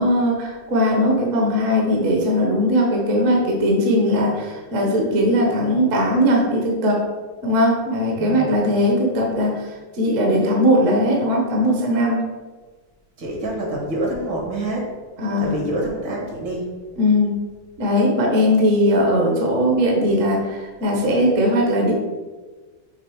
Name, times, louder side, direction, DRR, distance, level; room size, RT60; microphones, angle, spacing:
voice 1, 0.0-7.0 7.4-12.3 15.2-15.6 17.0-17.4 17.8-21.9, equal, 45° right, -1 dB, 1.3 m, -19 dB
voice 2, 8.1-8.5 13.2-14.9 15.4-16.7, right 1 dB, 65° right, -1 dB, 2.3 m, -26 dB
6.9 x 3.7 x 4.9 m, 1.3 s
omnidirectional pair, 2.2 m